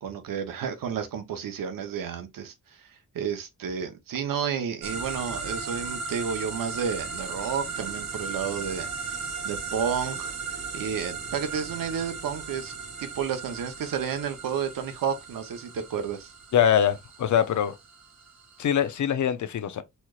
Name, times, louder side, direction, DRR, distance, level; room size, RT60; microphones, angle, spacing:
voice 1, 0.0-10.3 10.7-12.7 13.0-16.3, right 7 dB, 90° right, 0.9 m, -31 dB
sound 1, 4.8-19.0, right 5 dB, 55° right, 1.1 m, -37 dB
voice 2, 16.5-17.8 18.6-19.8, left 9 dB, 60° left, 0.6 m, -23 dB
4.3 x 3.0 x 2.3 m
wide cardioid pair, 130°, 33 cm